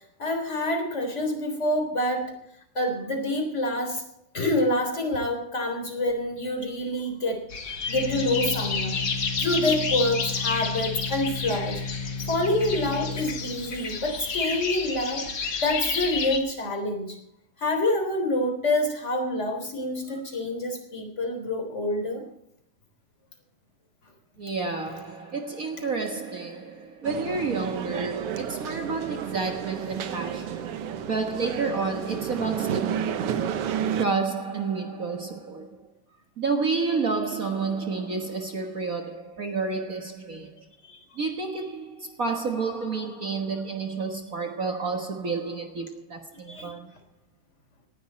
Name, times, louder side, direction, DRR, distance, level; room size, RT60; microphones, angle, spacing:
voice 1, 0.2-2.3 2.7-4.0 4.3-7.4 7.9-9.0 9.4-11.8 12.3-15.3 15.6-17.2 17.6-22.2 40.9-41.0 46.5-46.7, left 1 dB, 20° left, 3.8 m, -27 dB
Organ, 6.1-16.6, left 4 dB, 80° left, 3.6 m, -36 dB
sound 1, 7.5-16.4, left 5 dB, 40° left, 2.0 m, -31 dB
voice 2, 24.4-35.9 36.4-40.7 41.1-46.9, right 4 dB, 50° right, 1.1 m, -30 dB
sound 2, 27.0-34.1, right 8 dB, 65° right, 1.6 m, -31 dB
18.5 x 12.5 x 4.3 m
omnidirectional pair, 3.5 m